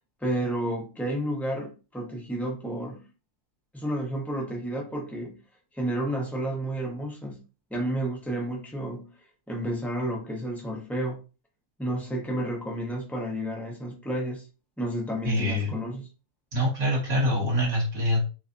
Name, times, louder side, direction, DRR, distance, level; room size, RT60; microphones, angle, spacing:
voice 1, 0.2-3.0 3.7-5.4 5.7-7.4 7.7-9.2 9.5-11.2 11.8-14.5 14.8-16.1, right 1 dB, ahead, 0.5 m, -31 dB
voice 2, 15.2-15.8 16.5-18.2, equal, 50° right, 1.4 m, -25 dB
3.4 x 3.1 x 2.6 m
omnidirectional pair, 1.8 m